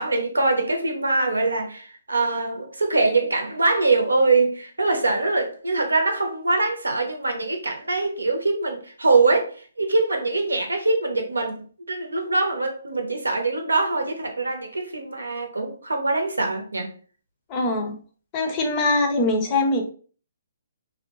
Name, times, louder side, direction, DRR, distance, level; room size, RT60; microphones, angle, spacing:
voice 1, 0.0-16.9, right 3 dB, 85° right, 0.7 m, -23 dB
voice 2, 17.5-18.0 18.3-19.8, left 2 dB, 30° left, 0.6 m, -22 dB
2.7 x 2.1 x 2.9 m
figure-of-eight pair, 135°, 0 cm